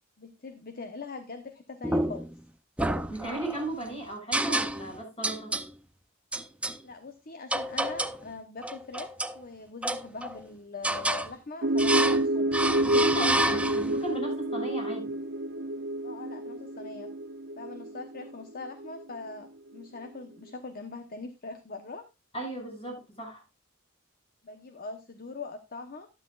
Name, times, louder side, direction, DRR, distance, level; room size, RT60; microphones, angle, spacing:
voice 1, 0.2-2.3 6.8-12.6 16.0-17.1 17.6-22.1 24.4-26.1, left 3 dB, 45° left, 7 dB, 1.1 m, -42 dB
sound 1, 1.8-2.4 2.8-3.7 4.3-5.0 5.2-5.7 6.3-6.8 7.5-8.2 8.6-9.4 9.8-10.4 10.8-11.3 11.8-12.2 12.5-14.0, right 1 dB, 5° right, 0.6 m, -29 dB
voice 2, 3.1-5.5 12.8-15.2 22.3-23.4, right 2 dB, 30° left, 1 dB, 7.1 m, -36 dB
sound 2, 11.6-19.3, right 1 dB, 60° right, 0.6 m, -29 dB
12.5 x 11.5 x 2.5 m, 0.26 s
head